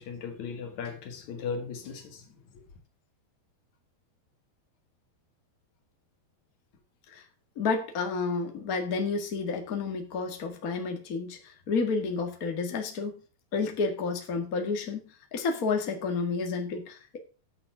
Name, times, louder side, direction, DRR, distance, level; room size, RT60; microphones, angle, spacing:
voice 1, 0.0-2.2, left 5 dB, 55° left, 2.6 m, -37 dB
voice 2, 7.5-13.1 13.5-15.0 15.3-17.2, left 4 dB, 85° left, 0.7 m, -30 dB
10.5 x 6.8 x 6.1 m
omnidirectional pair, 5.0 m